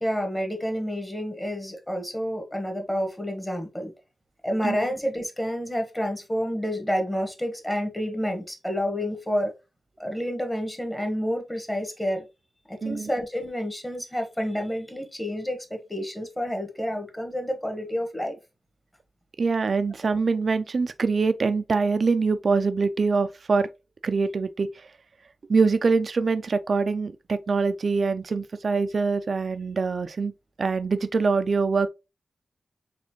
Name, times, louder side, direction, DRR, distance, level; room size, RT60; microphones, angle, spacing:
voice 1, 0.0-3.9 4.4-9.5 10.0-12.2 12.7-18.4, equal, 15° left, 1.3 m, -29 dB
voice 2, 19.4-23.7 24.0-24.7 25.5-30.3 30.6-31.9, right 4 dB, 60° right, 0.4 m, -24 dB
4.2 x 3.5 x 2.9 m
wide cardioid pair, 85°, 0 cm